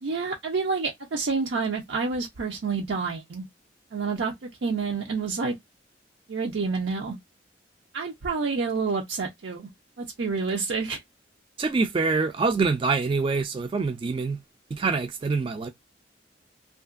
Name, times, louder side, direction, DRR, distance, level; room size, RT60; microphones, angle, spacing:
voice 1, 0.0-3.4 3.9-4.3 4.6-5.5 6.3-7.2 7.9-9.7 10.0-11.0, right 4 dB, 90° right, 0.5 m, -28 dB
voice 2, 11.6-14.4 14.7-15.7, right 4 dB, 30° right, 0.3 m, -25 dB
2.8 x 2.4 x 2.3 m
head